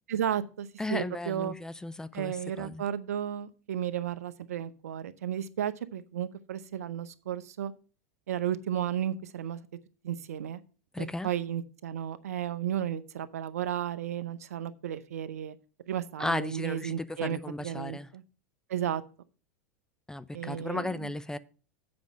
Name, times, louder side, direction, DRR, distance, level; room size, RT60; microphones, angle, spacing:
voice 1, 0.1-1.5 2.1-7.7 8.3-9.6 10.0-10.6 11.0-15.6 15.9-18.2 18.7-19.0 20.3-20.9, right 10 dB, 85° right, 0.7 m, -33 dB
voice 2, 0.8-2.8 10.9-11.3 16.2-18.1 20.1-21.4, left 2 dB, 10° left, 0.5 m, -35 dB
7.8 x 5.2 x 7.2 m
hypercardioid pair, 100°, 8 cm